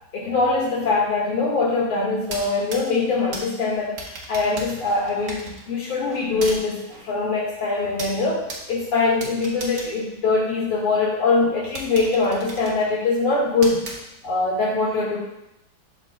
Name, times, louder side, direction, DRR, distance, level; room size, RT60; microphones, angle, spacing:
voice 1, 0.1-4.0 4.3-13.8 14.2-15.2, left 3 dB, 85° left, -4 dB, 2.7 m, -22 dB
sound 1, 2.2-10.9 11.3-11.4 11.7-14.5, right 2 dB, 45° right, 1.2 m, -38 dB
12.0 x 5.0 x 2.3 m, 0.87 s
omnidirectional pair, 2.4 m